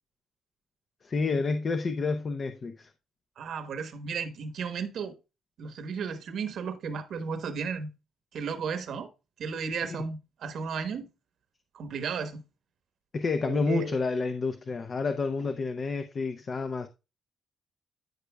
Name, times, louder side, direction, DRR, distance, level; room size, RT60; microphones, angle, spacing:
voice 1, 1.0-2.9 9.8-10.0 13.1-16.9, left 4 dB, 40° left, 0.6 m, -29 dB
voice 2, 3.4-5.1 5.6-7.9 8.3-9.1 9.4-11.1 11.7-12.4 13.4-14.0, right 5 dB, 65° right, 1.1 m, -34 dB
13.0 x 5.2 x 2.2 m
cardioid pair, 90°, 0 cm